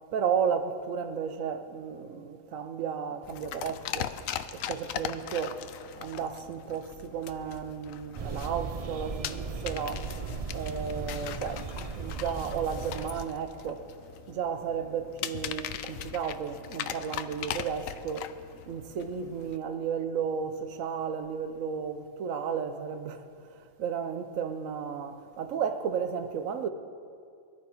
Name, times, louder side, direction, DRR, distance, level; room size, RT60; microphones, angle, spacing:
voice 1, 0.1-4.1 4.5-5.6 6.0-10.1 10.5-11.7 12.0-13.9 14.3-18.3 18.7-26.7, right 7 dB, 85° right, 1.2 m, -33 dB
sound 1, 3.2-19.6, left 10 dB, 85° left, 1.0 m, -40 dB
sound 2, 8.2-13.3, right 5 dB, 45° right, 0.4 m, -37 dB
19.5 x 11.5 x 4.5 m
omnidirectional pair, 1.3 m